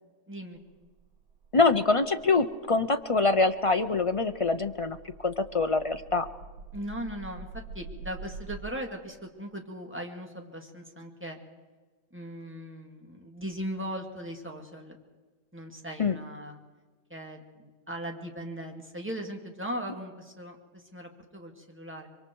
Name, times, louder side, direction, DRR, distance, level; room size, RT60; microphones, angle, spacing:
voice 1, 0.3-0.6 6.7-11.4 12.1-15.0 15.5-16.6 17.1-22.1, equal, 10° right, 2 dB, 2.2 m, -39 dB
sound 1, 0.6-8.6, right 3 dB, 90° right, 1.6 m, -47 dB
voice 2, 1.5-5.0 5.2-6.3 16.0-16.1, left 3 dB, 50° left, 9 dB, 0.3 m, -24 dB
25.5 x 24.0 x 4.6 m, 1.3 s
omnidirectional pair, 1.5 m